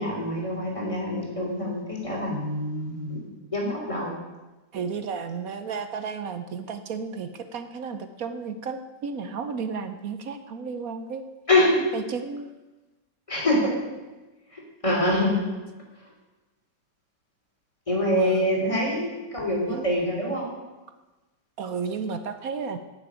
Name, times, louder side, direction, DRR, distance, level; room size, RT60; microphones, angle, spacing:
voice 1, 0.0-3.2 3.5-4.1 11.5-11.8 13.3-13.7 14.5-15.4 17.9-20.5, left 1 dB, 15° left, -2 dB, 3.5 m, -25 dB
voice 2, 4.7-11.2 11.9-12.5 18.1-18.5 19.7-19.8 21.6-22.8, right 5 dB, 60° right, 9 dB, 1.0 m, -33 dB
10.5 x 7.4 x 9.2 m, 1.1 s
omnidirectional pair, 2.0 m